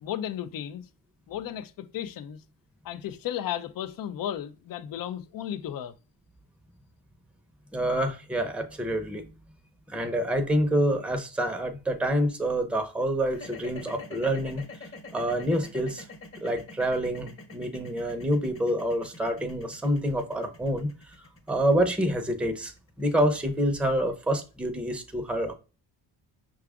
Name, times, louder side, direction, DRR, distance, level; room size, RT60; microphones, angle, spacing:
voice 1, 0.0-0.9 1.3-2.4 2.8-5.9, left 10 dB, 50° left, 0.5 m, -34 dB
voice 2, 7.7-9.2 9.9-14.6 15.1-16.0 16.4-20.9 21.5-22.7 23.0-25.5, right 1 dB, 5° right, 0.7 m, -27 dB
sound 1, 13.3-23.5, left 3 dB, 30° left, 1.1 m, -45 dB
5.7 x 2.4 x 3.5 m
cardioid pair, 90°, 43 cm